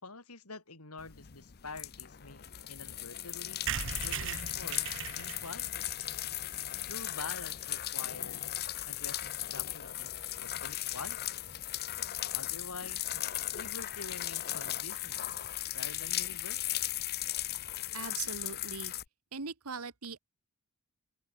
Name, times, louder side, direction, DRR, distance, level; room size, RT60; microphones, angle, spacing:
voice 1, 0.0-3.7 4.0-5.9 6.9-8.6 8.9-10.1 10.4-11.4 12.3-13.1 13.5-15.4 15.7-17.0, left 3 dB, 85° left, 5.3 m, -47 dB
sound 1, 1.0-19.0, left 14 dB, 45° left, 0.8 m, -37 dB
sound 2, 3.7-7.3 7.8-7.9 8.1-8.2 8.4-8.5 8.7-8.9, right 8 dB, 60° right, 1.3 m, -40 dB
sound 3, 3.9-13.2, equal, 20° left, 6.9 m, -61 dB
voice 2, 17.9-18.9 19.3-20.2, right 5 dB, 85° right, 1.6 m, -40 dB
open air
head